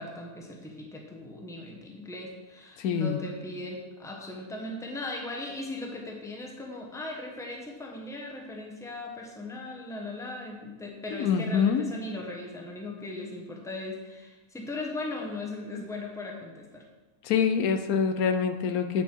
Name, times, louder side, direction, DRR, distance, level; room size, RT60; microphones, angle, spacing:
voice 1, 0.0-16.8, left 2 dB, ahead, 0 dB, 0.9 m, -38 dB
voice 2, 2.8-3.2 11.1-11.9 17.2-19.0, left 6 dB, 80° left, 8 dB, 1.1 m, -25 dB
9.2 x 5.5 x 4.5 m, 1.2 s
omnidirectional pair, 1.5 m